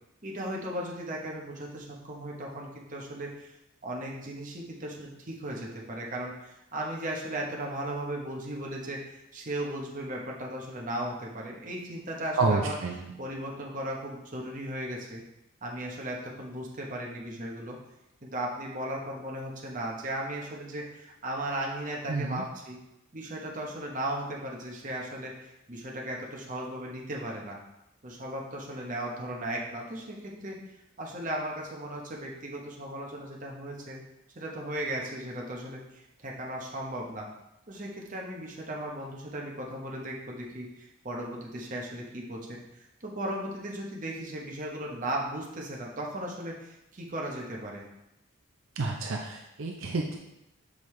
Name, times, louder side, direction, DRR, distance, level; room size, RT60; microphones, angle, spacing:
voice 1, 0.2-3.5 3.8-12.8 13.2-15.2 15.6-17.8 18.2-22.8 23.1-27.6 28.0-30.6 31.0-34.0 34.3-37.3 37.7-47.8, right 1 dB, 35° right, -2 dB, 1.0 m, -36 dB
voice 2, 12.4-13.1 22.1-22.4 48.8-50.2, right 3 dB, 70° right, 1 dB, 0.6 m, -29 dB
6.4 x 5.3 x 3.2 m, 0.89 s
head